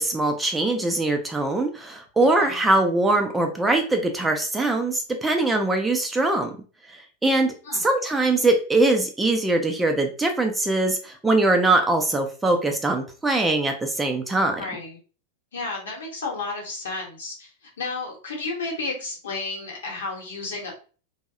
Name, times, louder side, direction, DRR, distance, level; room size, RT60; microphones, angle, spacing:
voice 1, 0.0-6.5 6.9-14.6, right 2 dB, 10° right, 3 dB, 0.4 m, -22 dB
voice 2, 14.6-15.0 15.5-17.5 17.8-20.7, left 3 dB, 65° left, 0 dB, 0.9 m, -32 dB
2.6 x 2.0 x 2.4 m, 0.37 s
figure-of-eight pair, 90°, 0 cm